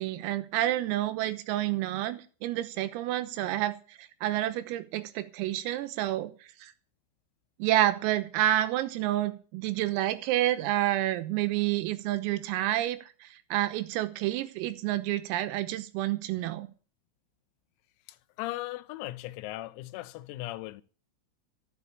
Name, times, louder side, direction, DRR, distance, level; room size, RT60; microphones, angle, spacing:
voice 1, 0.0-6.3 6.6-6.7 7.6-16.7, right 14 dB, 85° right, 3.7 m, -29 dB
voice 2, 18.4-20.8, left 17 dB, 90° left, 3.5 m, -37 dB
13.0 x 7.5 x 8.4 m
omnidirectional pair, 6.0 m